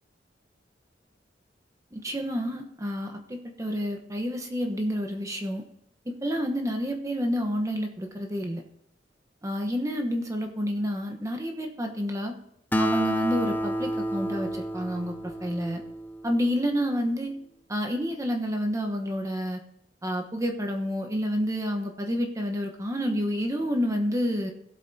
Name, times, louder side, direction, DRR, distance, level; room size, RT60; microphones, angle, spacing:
voice 1, 1.9-5.6 6.1-8.6 9.4-12.3 12.8-15.8 16.2-17.3 17.7-19.6 20.0-24.5, equal, 20° right, 4 dB, 1.0 m, -29 dB
Acoustic guitar, 12.7-16.4, equal, 10° left, 0.4 m, -30 dB
18.0 x 8.3 x 2.8 m, 0.76 s
head